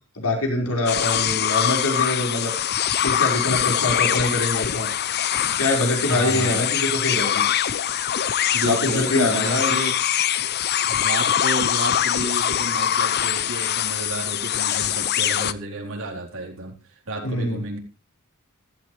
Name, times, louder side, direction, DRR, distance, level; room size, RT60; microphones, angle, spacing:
voice 1, 0.2-2.5 3.0-4.9 5.6-7.5 8.6-9.7 17.2-17.6, left 2 dB, 75° left, 1 dB, 5.2 m, -24 dB
sound 1, 0.9-15.5, left 10 dB, 50° left, 0.6 m, -23 dB
voice 2, 6.1-6.7 8.5-10.0 10.9-16.8 17.1-17.8, right 2 dB, 65° right, 0 dB, 4.0 m, -31 dB
15.5 x 12.5 x 3.3 m, 0.29 s
head